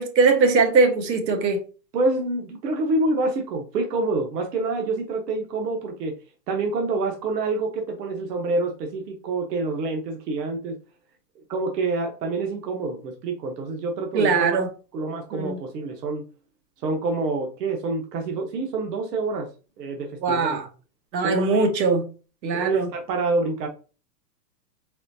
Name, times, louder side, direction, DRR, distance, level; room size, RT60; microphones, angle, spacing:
voice 1, 0.0-1.6 14.1-14.7 15.3-15.6 20.2-20.7 21.1-22.1 22.4-22.9, right 4 dB, 90° right, 1.3 m, -21 dB
voice 2, 1.9-6.1 6.5-10.8 11.5-14.6 14.9-16.2 16.8-19.5 19.8-20.6 21.2-21.6 22.5-23.7, right 3 dB, 70° right, 1.1 m, -27 dB
4.1 x 3.9 x 2.7 m
supercardioid pair, 180°, 50 cm